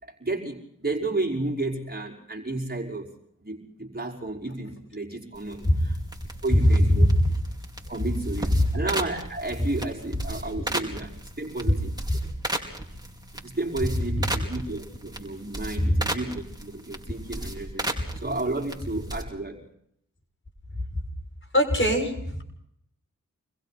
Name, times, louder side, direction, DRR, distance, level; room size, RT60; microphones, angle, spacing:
voice 1, 0.0-3.1 3.4-6.0 6.4-7.1 7.9-11.1 11.4-12.2 13.3-18.0 18.2-19.6, right 2 dB, 30° right, -1 dB, 5.5 m, -32 dB
sound 1, 5.3-19.2, right 1 dB, 10° right, 4.7 m, -36 dB
voice 2, 6.5-7.3 8.6-8.7 9.6-9.7 11.7-11.8 12.1-12.3 14.1-14.5 15.8-16.0 20.9-21.0 21.5-22.4, equal, 35° left, 4 dB, 6.6 m, -21 dB
28.5 x 21.5 x 4.3 m, 0.71 s
cardioid pair, 45°, 33 cm